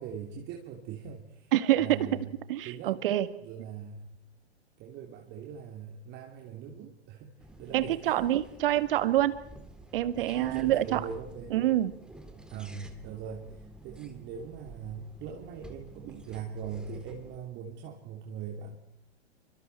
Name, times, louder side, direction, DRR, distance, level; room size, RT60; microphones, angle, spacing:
voice 1, 0.0-1.5 1.8-2.3 2.6-2.9 3.4-4.1 4.8-7.3 7.6-8.3 10.2-11.6 12.4-18.8, right 7 dB, 35° right, 1 dB, 2.9 m, -41 dB
voice 2, 1.5-2.2 2.5-3.3 7.7-9.4 9.9-11.1 11.5-11.9, right 13 dB, 55° right, 13 dB, 1.8 m, -26 dB
sound 1, 7.4-17.4, right 1 dB, ahead, 2.4 m, -50 dB
28.0 x 25.0 x 4.5 m, 0.83 s
figure-of-eight pair, 110°, 34 cm